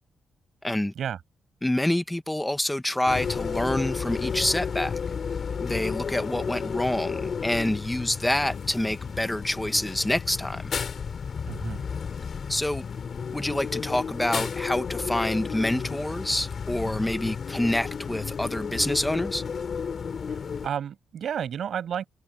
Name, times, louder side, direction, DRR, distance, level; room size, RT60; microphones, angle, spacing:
voice 1, 0.6-0.9 1.6-4.9 5.6-10.7 12.5-12.8 13.3-19.4, left 1 dB, 5° left, 0.6 m, -27 dB
sound 1, 3.1-20.7, left 6 dB, 40° left, 4.7 m, -32 dB
voice 2, 11.5-11.8 20.3-20.4 20.6-22.1, right 8 dB, 55° right, 5.0 m, -31 dB
wide cardioid pair, 170°, 0 cm